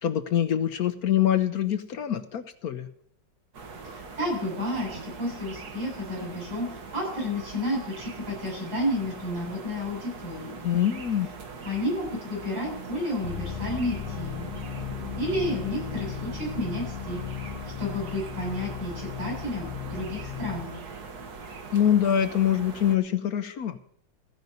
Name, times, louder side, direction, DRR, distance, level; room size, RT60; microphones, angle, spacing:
voice 1, 0.0-2.9 10.6-11.3 21.7-23.8, left 10 dB, 65° left, 10 dB, 1.0 m, -24 dB
sound 1, 3.5-23.0, right 4 dB, 55° right, 1.9 m, -41 dB
voice 2, 3.9-10.6 11.6-14.5 15.2-17.2 17.8-20.7, left 1 dB, 85° right, -3 dB, 8.7 m, -31 dB
sound 2, 13.2-20.6, left 9 dB, 45° left, 1.3 m, -36 dB
15.5 x 5.3 x 9.2 m, 0.65 s
omnidirectional pair, 2.0 m